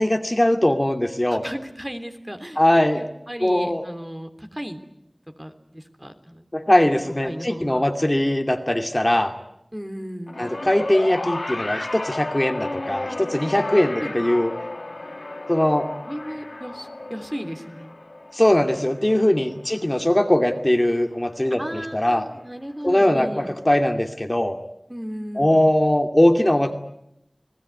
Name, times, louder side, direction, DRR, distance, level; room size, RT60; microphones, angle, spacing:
voice 1, 0.0-1.4 2.6-3.0 3.4-3.8 6.5-9.3 10.4-14.5 15.5-15.9 18.3-22.2 22.8-24.6 25.4-26.7, left 1 dB, 30° left, 5 dB, 2.4 m, -20 dB
voice 2, 1.3-4.8 5.4-6.5 7.1-8.3 9.7-10.4 14.0-14.1 16.0-17.9 21.5-23.5 24.9-25.6, equal, 15° right, 6 dB, 3.3 m, -35 dB
sound 1, 10.3-20.7 21.7-21.8, left 2 dB, 80° left, 2.1 m, -34 dB
30.0 x 19.0 x 9.7 m, 0.83 s
wide cardioid pair, 40°, 0 cm